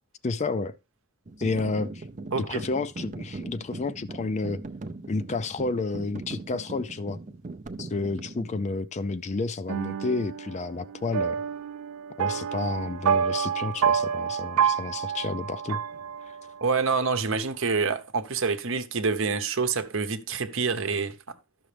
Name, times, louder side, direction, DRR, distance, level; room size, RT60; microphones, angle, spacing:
voice 1, 0.2-0.7 1.4-2.0 2.4-4.6 5.1-7.2 7.8-11.4 12.2-15.8, left 3 dB, 30° left, 0.4 m, -30 dB
sound 1, 1.3-8.6, right 2 dB, 35° right, 0.5 m, -40 dB
sound 2, 9.7-16.7, right 7 dB, 85° right, 0.5 m, -28 dB
voice 2, 16.6-21.2, right 4 dB, 60° right, 0.9 m, -27 dB
12.5 x 6.2 x 3.4 m
head